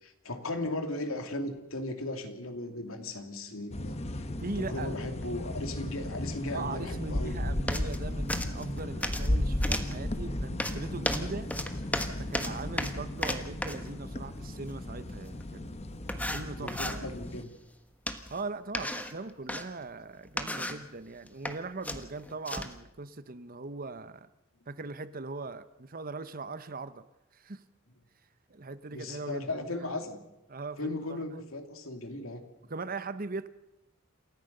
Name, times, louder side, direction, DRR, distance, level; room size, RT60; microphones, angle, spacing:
voice 1, 0.0-4.2 4.6-7.4 16.6-17.6 28.9-30.2 30.8-32.4, left 2 dB, 85° left, 6 dB, 2.6 m, -37 dB
sound 1, 3.7-17.4, left 1 dB, 30° left, 1.1 m, -35 dB
voice 2, 4.4-5.0 6.5-11.5 12.2-15.8 16.3-17.1 18.3-24.3 24.7-27.0 27.3-27.6 28.5-29.9 30.5-31.2 32.7-33.5, right 3 dB, 45° right, 13 dB, 1.0 m, -40 dB
sound 2, 7.7-8.0 8.3-9.3 9.6-10.0 10.6-13.9 15.4-15.5 16.1-17.0 18.1-18.4 18.7-19.6 20.2-20.9 21.3-21.6 21.8-22.8, left 1 dB, 5° left, 1.3 m, -34 dB
28.0 x 14.5 x 6.7 m, 0.93 s
head